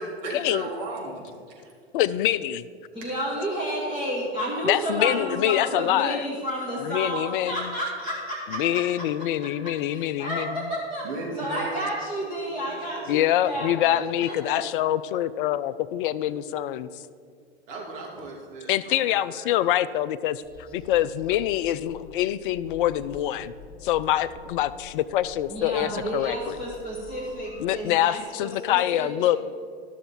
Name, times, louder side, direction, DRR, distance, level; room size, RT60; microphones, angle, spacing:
voice 1, 0.0-1.3 3.0-3.2 11.0-11.8 12.5-13.2 13.5-13.8 14.1-14.2 17.7-19.6, right 2 dB, 55° right, -2 dB, 2.7 m, -36 dB
voice 2, 1.9-2.6 4.6-6.2 6.8-7.7 8.5-10.7 13.1-16.9 18.7-20.4 20.7-23.5 23.8-26.6 27.6-29.4, left 12 dB, 55° left, 16 dB, 0.5 m, -25 dB
voice 3, 2.9-8.8 9.4-9.5 9.9-11.0 11.4-14.6 25.5-29.3, equal, 15° right, -5 dB, 1.6 m, -31 dB
sound 1, 20.4-27.8, left 4 dB, 30° left, 1.5 m, -47 dB
12.5 x 6.5 x 4.3 m, 2.2 s
hypercardioid pair, 95°, 32 cm